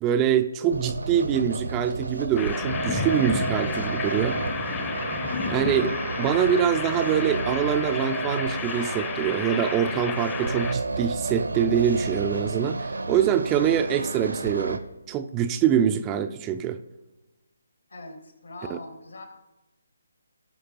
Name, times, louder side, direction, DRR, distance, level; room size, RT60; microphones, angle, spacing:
voice 1, 0.0-4.4 5.4-16.8 18.7-18.8, right 9 dB, 15° right, 8 dB, 0.4 m, -24 dB
sound 1, 0.7-14.8, right 3 dB, 70° right, 0.8 m, -31 dB
sound 2, 2.4-10.7, left 5 dB, 15° left, 0.7 m, -32 dB
voice 2, 17.9-19.3, left 2 dB, 70° left, 3 dB, 2.2 m, -41 dB
18.5 x 6.4 x 2.9 m, 1.0 s
figure-of-eight pair, 145°, 0 cm